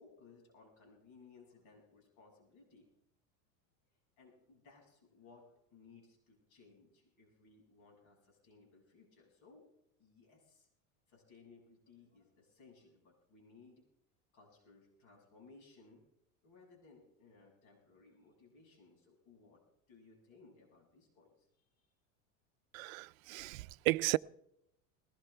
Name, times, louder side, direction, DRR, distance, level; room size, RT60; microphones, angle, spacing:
voice 1, 0.0-2.9 4.2-9.6 10.0-10.7 11.1-13.8 14.3-16.0 16.4-19.6 19.9-21.9, left 4 dB, 55° left, 6.3 m, -62 dB
voice 2, 22.7-24.2, right 21 dB, 85° right, 0.5 m, -34 dB
20.5 x 18.0 x 3.4 m
supercardioid pair, 150°, 39 cm